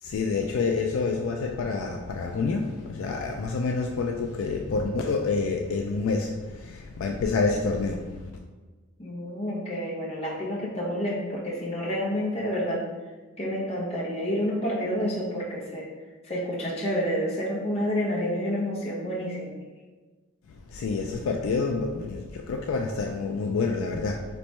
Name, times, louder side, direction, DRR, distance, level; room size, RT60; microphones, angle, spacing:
voice 1, 0.0-8.2 20.7-24.3, left 4 dB, 65° left, 2 dB, 0.3 m, -28 dB
voice 2, 9.0-12.8 13.4-15.9 16.3-19.5, equal, 30° left, -5 dB, 1.0 m, -29 dB
3.2 x 3.1 x 4.2 m, 1.3 s
head